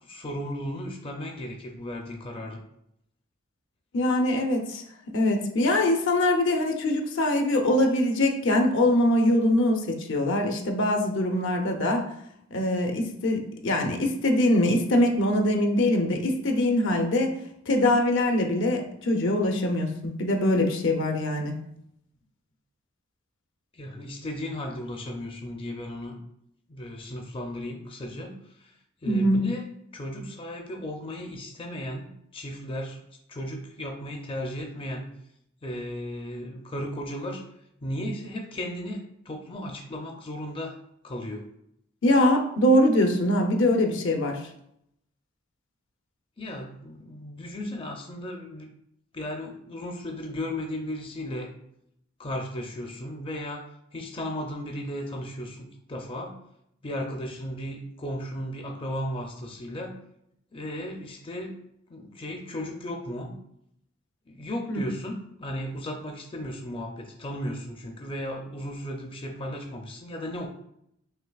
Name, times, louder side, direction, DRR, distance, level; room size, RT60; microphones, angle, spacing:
voice 1, 0.0-2.6 23.7-26.2 26.7-28.3 28.6-28.7 29.0-29.6 29.9-33.0 33.3-35.1 35.6-37.4 37.8-40.8 41.0-41.4 46.4-48.7 49.1-51.5 52.2-53.6 53.9-56.3 56.8-59.9 60.5-61.5 61.9-63.3 64.3-70.5, equal, 25° left, 2 dB, 0.5 m, -35 dB
voice 2, 3.9-12.1 12.5-17.3 17.7-21.6 29.1-29.4 42.0-44.5 64.7-64.8, left 1 dB, 65° left, 3 dB, 0.7 m, -23 dB
5.5 x 3.2 x 2.3 m, 0.74 s
head